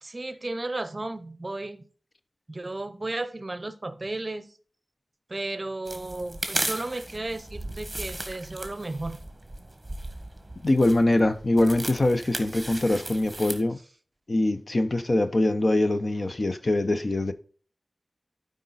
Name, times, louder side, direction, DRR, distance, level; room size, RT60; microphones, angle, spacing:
voice 1, 0.0-1.8 2.5-4.5 5.3-9.2, right 2 dB, 35° right, 0.8 m, -34 dB
sound 1, 5.9-13.6, right 1 dB, 15° right, 1.5 m, -36 dB
voice 2, 10.6-13.8 14.3-17.3, left 2 dB, 45° left, 0.7 m, -23 dB
12.0 x 5.1 x 4.0 m
wide cardioid pair, 90°, 0 cm